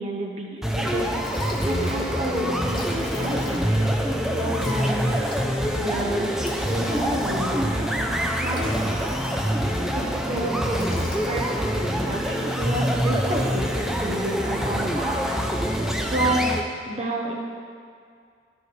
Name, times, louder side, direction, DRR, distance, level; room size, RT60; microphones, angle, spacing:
voice 1, 0.0-4.0 4.3-5.2 5.7-6.3 6.7-9.1 9.6-9.7 9.9-15.2 16.1-16.5 16.9-17.3, right 1 dB, 35° right, -1 dB, 1.0 m, -30 dB
sound 1, 0.6-16.6, equal, ahead, 0.4 m, -25 dB
Liquid, 0.8-0.9 1.1-2.1 2.4-2.5 2.6-3.9 4.6-7.6 8.3-9.8 10.1-10.3 10.7-11.8, left 2 dB, 25° left, 0.7 m, -41 dB
11.5 x 6.4 x 3.2 m, 2.2 s
head